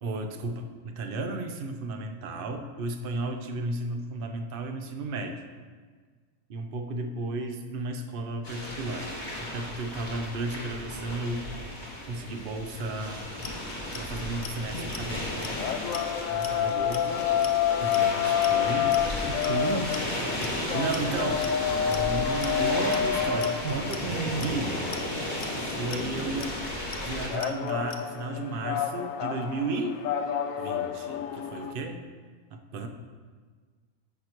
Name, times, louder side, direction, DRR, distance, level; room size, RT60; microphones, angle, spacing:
voice 1, 0.0-5.4 6.5-9.1 9.4-11.5 12.1-13.3 13.9-15.6 16.3-17.3 17.8-19.1 20.7-21.5 21.8-24.7 25.8-26.6 27.1-30.0 30.6-32.1 32.5-32.9, right 2 dB, 50° right, 5 dB, 0.8 m, -34 dB
sound 1, 8.4-27.3, left 1 dB, 35° left, 1.9 m, -34 dB
Clock, 13.1-28.0, left 7 dB, 50° left, 0.7 m, -42 dB
sound 2, 15.1-31.7, left 9 dB, 75° left, 0.9 m, -29 dB
voice 2, 19.3-20.1 23.6-24.5, right 5 dB, 85° right, 2 dB, 1.1 m, -32 dB
14.0 x 5.9 x 3.0 m, 1.5 s
omnidirectional pair, 1.5 m